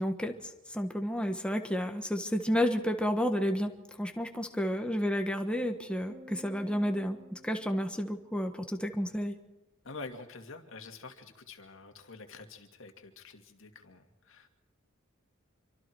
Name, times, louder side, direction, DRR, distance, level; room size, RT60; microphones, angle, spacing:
voice 1, 0.0-3.7 4.0-9.3, equal, 5° left, 5 dB, 1.4 m, -31 dB
sound 1, 6.1-8.6, equal, 55° right, 4.2 m, -53 dB
voice 2, 9.8-14.5, left 3 dB, 65° left, 6 dB, 2.4 m, -47 dB
26.5 x 25.0 x 4.7 m, 0.98 s
head